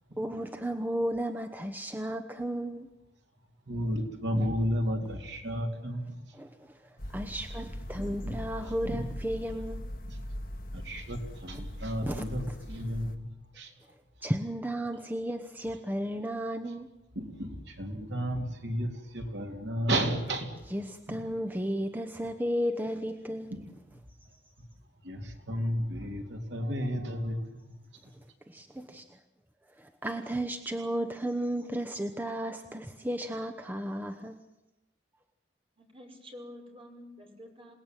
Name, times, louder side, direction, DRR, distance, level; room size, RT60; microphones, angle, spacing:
voice 1, 0.2-2.9 6.3-6.5 7.1-9.9 12.0-12.5 14.2-16.9 20.7-23.5 28.5-29.0 29.8-34.4, equal, 10° right, 5 dB, 1.0 m, -34 dB
voice 2, 3.7-6.2 7.2-7.3 7.9-8.4 8.9-9.1 10.1-10.2 10.7-13.3 13.5-13.7 17.1-20.6 23.5-23.7 25.0-27.6, equal, 70° right, 4 dB, 3.3 m, -33 dB
sound 1, 7.0-13.2, equal, 55° left, 2.2 m, -40 dB
voice 3, 35.8-37.7, left 1 dB, 30° right, 3 dB, 5.6 m, -48 dB
27.5 x 18.5 x 9.1 m, 0.94 s
head